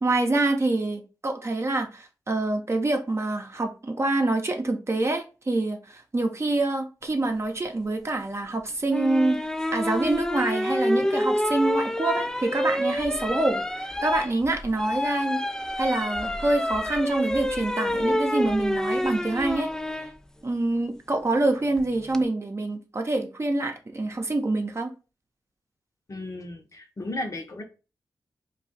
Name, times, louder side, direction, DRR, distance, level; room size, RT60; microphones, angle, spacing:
voice 1, 0.0-9.4 9.7-15.4 15.8-19.7 20.4-24.9, right 2 dB, 35° right, 0.7 m, -26 dB
sound 1, 8.9-20.1 21.8-22.2, left 1 dB, 5° left, 0.3 m, -27 dB
voice 2, 26.1-27.6, left 2 dB, 45° left, 0.8 m, -34 dB
2.3 x 2.3 x 4.0 m
supercardioid pair, 40°, 8 cm